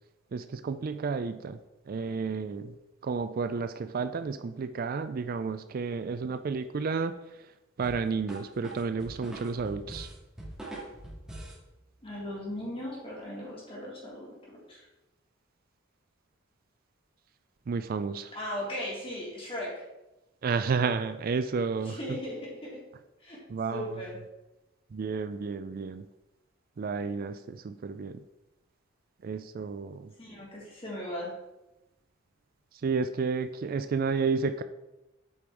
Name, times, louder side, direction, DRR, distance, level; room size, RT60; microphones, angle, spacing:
voice 1, 0.3-1.6 1.9-2.7 3.0-7.1 7.8-10.1 17.7-18.3 20.4-22.2 23.5-24.0 24.9-26.1 26.8-28.2 29.2-30.1 32.8-34.6, right 5 dB, 45° right, 11 dB, 0.4 m, -31 dB
sound 1, 7.8-11.6, right 1 dB, 5° right, 2.2 m, -42 dB
voice 2, 12.0-14.8 18.3-19.8 21.8-22.8 23.2-23.4 23.7-24.2 30.2-31.3, left 1 dB, 30° left, -5 dB, 3.1 m, -38 dB
8.5 x 5.2 x 4.6 m, 0.97 s
head